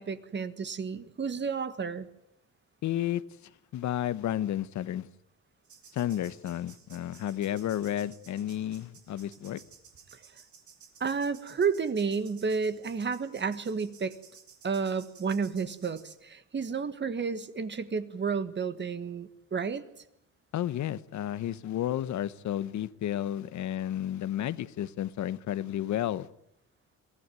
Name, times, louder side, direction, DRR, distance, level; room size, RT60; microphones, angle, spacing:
voice 1, 0.0-2.1 10.1-10.2 11.0-14.1 14.6-19.8, right 5 dB, 35° right, 11 dB, 1.6 m, -31 dB
voice 2, 2.8-3.2 3.7-5.1 5.9-9.6 20.5-26.3, left 11 dB, 70° left, 16 dB, 1.0 m, -32 dB
sound 1, 5.6-16.1, right 7 dB, 70° right, 3.8 m, -56 dB
22.5 x 15.5 x 9.3 m, 0.77 s
cardioid pair, 90°, 30 cm